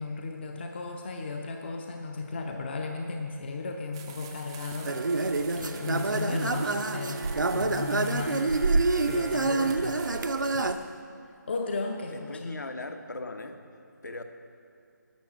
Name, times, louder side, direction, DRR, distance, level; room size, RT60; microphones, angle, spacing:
voice 1, 0.0-5.0 5.5-7.2 7.5-10.0 10.5-10.9 11.5-12.5, left 3 dB, 35° left, 3 dB, 0.7 m, -35 dB
sound 1, 3.9-10.8, right 7 dB, 15° right, 0.5 m, -47 dB
sound 2, 4.9-10.8, right 3 dB, 70° right, 0.7 m, -27 dB
voice 2, 12.1-13.6 14.0-14.2, left 2 dB, 65° left, 6 dB, 1.1 m, -38 dB
11.5 x 7.0 x 7.3 m, 2.4 s
figure-of-eight pair, 155°, 10 cm